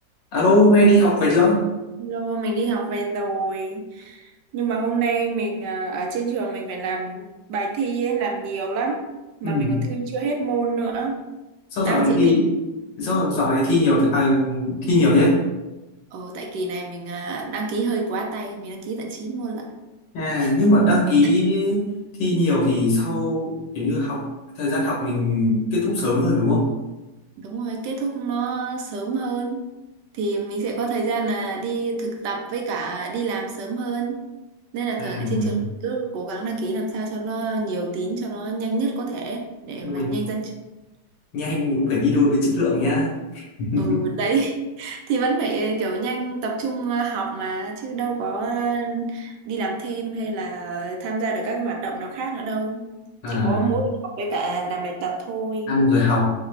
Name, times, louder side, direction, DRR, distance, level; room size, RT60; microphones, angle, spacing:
voice 1, 0.3-1.6 9.4-9.8 11.7-12.5 13.0-15.4 20.1-21.9 22.2-24.3 24.6-26.7 35.0-35.6 39.8-40.1 41.3-44.0 53.2-53.7 55.7-56.4, left 1 dB, 80° left, -4 dB, 1.9 m, -20 dB
voice 2, 2.0-9.0 9.4-11.2 11.8-12.3 16.1-19.7 20.4-20.5 27.4-29.6 30.1-34.2 34.7-35.6 35.8-40.6 43.8-52.9 53.3-55.8, right 4 dB, 75° right, 2 dB, 1.1 m, -27 dB
4.7 x 2.2 x 3.3 m, 1.0 s
omnidirectional pair, 2.0 m